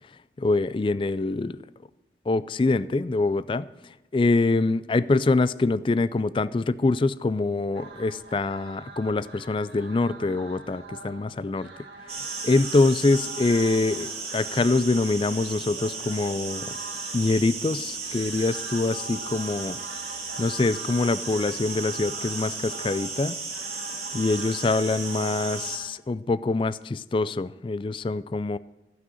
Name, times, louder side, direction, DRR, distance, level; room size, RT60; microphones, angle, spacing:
voice 1, 0.4-1.6 2.3-3.7 4.1-11.7 12.2-16.8 17.1-19.8 20.4-23.4 24.1-28.6, left 3 dB, 30° left, 17 dB, 0.3 m, -24 dB
sound 1, 7.7-25.9, right 3 dB, 75° right, 1.7 m, -44 dB
sound 2, 12.1-25.8, right 4 dB, 35° right, 2.1 m, -35 dB
14.5 x 6.2 x 7.6 m, 1.0 s
head